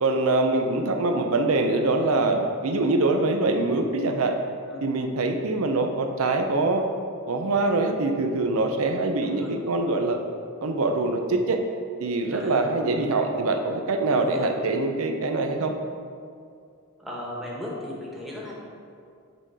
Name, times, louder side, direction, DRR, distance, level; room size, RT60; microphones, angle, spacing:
voice 1, 0.0-4.3 4.8-6.8 7.3-10.2 10.6-11.6 12.0-15.7, right 2 dB, 75° right, 5 dB, 0.7 m, -24 dB
voice 2, 9.2-9.5 12.3-13.0 14.1-14.5 17.0-18.5, left 1 dB, ahead, -5 dB, 1.3 m, -36 dB
8.9 x 3.8 x 4.8 m, 2.3 s
head